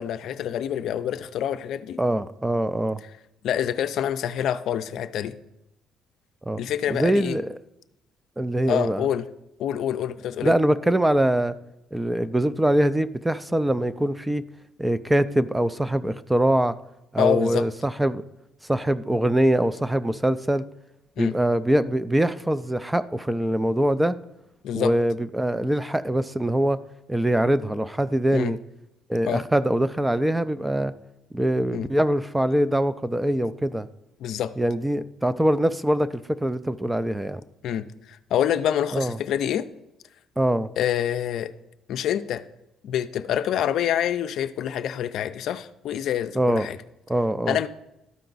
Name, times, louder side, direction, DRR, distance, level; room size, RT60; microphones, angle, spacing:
voice 1, 0.0-2.0 3.4-5.3 6.6-7.4 8.7-9.2 9.6-10.5 17.2-17.6 21.2-21.3 24.6-24.9 28.3-28.5 29.3-29.4 31.7-31.9 34.2-34.5 37.6-37.8 38.3-39.6 40.8-41.5 41.9-42.4 42.8-46.8 47.5-47.7, left 10 dB, 70° left, 10 dB, 0.4 m, -26 dB
voice 2, 2.0-3.0 6.5-6.6 6.9-7.6 8.4-9.1 10.4-11.6 11.9-14.4 14.8-16.8 17.1-18.2 18.7-20.6 21.2-24.2 24.7-26.8 27.1-28.6 29.1-30.9 31.3-33.9 34.6-37.4 38.9-39.2 40.4-40.7 46.4-46.7 47.1-47.7, right 1 dB, 10° right, 14 dB, 0.4 m, -23 dB
12.5 x 4.5 x 3.9 m, 0.89 s
cardioid pair, 90°, 0 cm